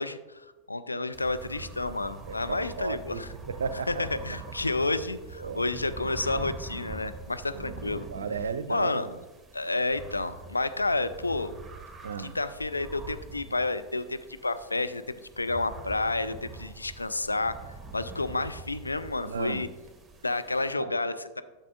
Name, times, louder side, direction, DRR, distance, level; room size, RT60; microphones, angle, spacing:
voice 1, 0.0-3.3 3.9-8.1 8.7-9.1 9.5-11.5 12.2-19.7 20.2-21.4, left 2 dB, 80° left, 11 dB, 0.4 m, -30 dB
sound 1, 1.1-20.7, right 3 dB, 10° right, 1.1 m, -44 dB
voice 2, 2.5-4.0 5.4-5.6 7.5-9.2 12.0-12.3 19.2-19.7 20.8-20.9, right 5 dB, 70° right, 14 dB, 0.5 m, -35 dB
11.5 x 6.6 x 2.5 m, 1.2 s
figure-of-eight pair, 90°, 0 cm